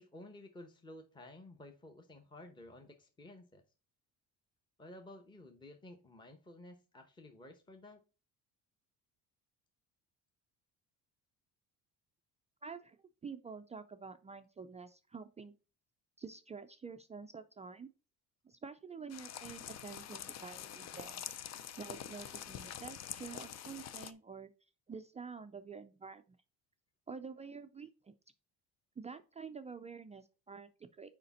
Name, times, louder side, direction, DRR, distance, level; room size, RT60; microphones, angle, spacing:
voice 1, 0.0-3.6 4.8-8.0, left 1 dB, 15° left, 4 dB, 0.9 m, -53 dB
voice 2, 12.6-13.0 13.2-15.5 16.2-17.9 18.4-21.4 21.8-24.5 24.9-26.4 27.1-28.2 29.0-31.1, right 5 dB, 20° right, 9 dB, 0.4 m, -48 dB
sound 1, 19.1-24.1, left 9 dB, 45° left, 0.6 m, -46 dB
6.8 x 5.1 x 4.2 m, 0.33 s
cardioid pair, 140°, 36 cm